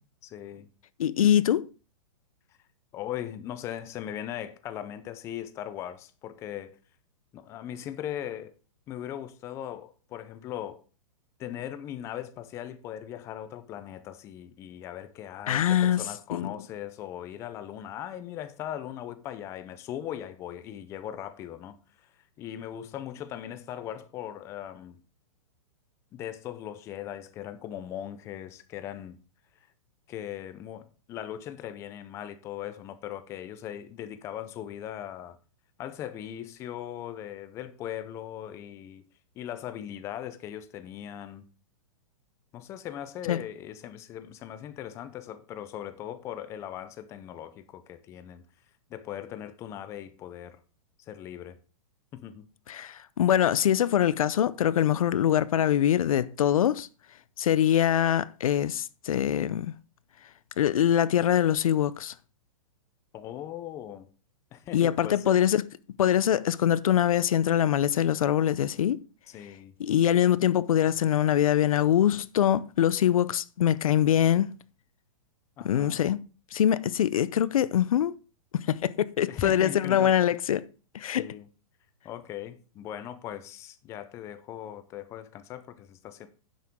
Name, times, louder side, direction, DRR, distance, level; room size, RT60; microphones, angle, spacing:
voice 1, 0.2-0.7 2.9-6.8 7.3-8.5 8.9-10.8 11.4-21.8 22.4-25.0 26.1-29.2 30.1-35.4 35.8-39.0 39.4-41.4 42.5-48.4 48.9-50.6 51.1-51.6 52.1-52.5 63.1-64.1 64.5-65.3 69.3-69.7 75.6-76.0 79.3-80.1 81.2-81.5 82.0-86.3, left 11 dB, 15° left, 0.6 m, -39 dB
voice 2, 1.0-1.7 15.5-16.0 16.3-16.5 43.3-43.4 52.7-56.9 57.4-59.7 60.6-62.1 64.7-65.7 66.0-69.0 69.8-74.5 75.6-76.2 76.5-78.1 78.5-80.7 80.9-81.3, left 10 dB, 80° left, 0.6 m, -23 dB
10.0 x 7.5 x 3.7 m
hypercardioid pair, 165°, 18 cm